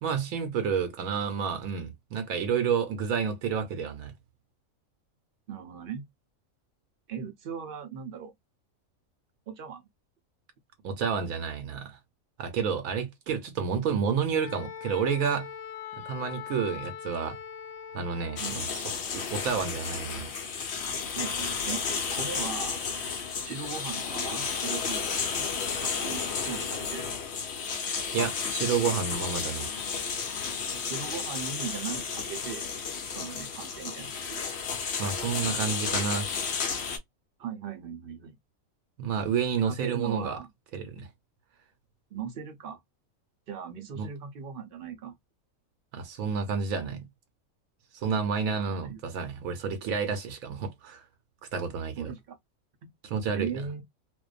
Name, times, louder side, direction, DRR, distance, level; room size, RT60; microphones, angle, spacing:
voice 1, 0.0-4.1 10.8-12.0 12.4-15.5 16.0-17.4 17.9-18.8 19.1-20.3 28.1-29.7 35.0-36.3 39.0-40.4 40.7-41.1 44.0-44.1 45.9-47.1 47.9-51.0 51.5-52.1 53.0-53.5, right 6 dB, 85° right, 1.1 m, -30 dB
voice 2, 5.5-6.0 7.1-8.3 9.5-9.8 18.4-18.6 21.1-21.8 22.1-22.8 23.4-25.5 25.7-27.1 30.8-32.7 33.1-34.4 37.4-38.4 39.6-40.5 42.1-42.8 43.5-45.1 48.5-49.0 52.0-52.4 52.8-52.9 53.3-53.8, right 7 dB, 55° right, 0.6 m, -38 dB
Wind instrument woodwind instrument, 14.4-18.7, left 8 dB, 85° left, 1.0 m, -41 dB
sound 1, 18.4-37.0, left 6 dB, 60° left, 0.9 m, -32 dB
2.5 x 2.2 x 2.3 m
omnidirectional pair, 1.4 m